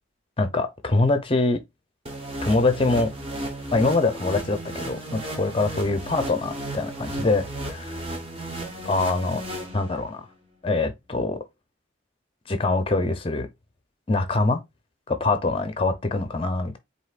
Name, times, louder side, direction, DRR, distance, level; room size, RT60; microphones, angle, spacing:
voice 1, 0.4-1.6 2.4-3.1 3.7-8.0 8.9-9.4 9.7-10.3 10.6-11.4 12.5-13.5 14.1-14.6 15.1-16.8, left 3 dB, 25° left, 0.6 m, -24 dB
sound 1, 2.1-10.2, right 1 dB, 30° right, 1.1 m, -34 dB
7.8 x 2.8 x 2.4 m
head